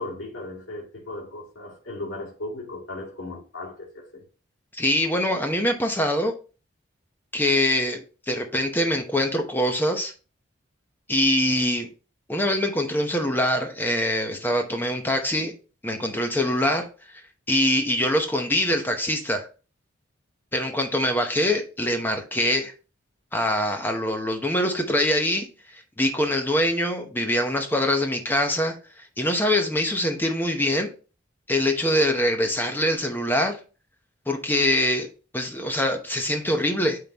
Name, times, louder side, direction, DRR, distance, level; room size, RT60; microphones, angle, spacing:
voice 1, 0.0-4.2, left 2 dB, 75° left, 2.3 m, -36 dB
voice 2, 4.7-6.3 7.3-10.1 11.1-11.9 12.3-15.5 15.8-16.9 17.1-17.2 17.5-19.5 20.5-22.7 23.3-30.9 31.5-33.6 34.3-37.0, left 1 dB, 10° left, 0.9 m, -24 dB
8.9 x 3.8 x 2.9 m
head